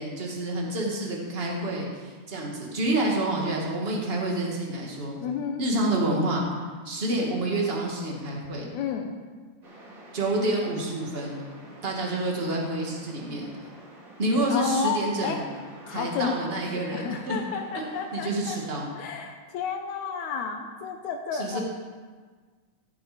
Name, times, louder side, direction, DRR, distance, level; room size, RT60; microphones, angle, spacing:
voice 1, 0.0-5.1 5.6-6.4 6.8-8.7 10.1-11.4 11.8-13.5 14.2-15.4 15.9-17.4 17.7-17.8 18.1-18.9 21.3-21.6, right 1 dB, 25° right, -2 dB, 1.8 m, -28 dB
voice 2, 5.2-5.6 8.7-9.1 14.5-15.4 15.8-16.4 16.9-18.6 18.8-21.6, left 7 dB, 80° left, 3 dB, 2.2 m, -31 dB
sound 1, 9.6-18.7, right 1 dB, 40° right, 3.2 m, -48 dB
15.5 x 7.3 x 5.0 m, 1.5 s
omnidirectional pair, 3.4 m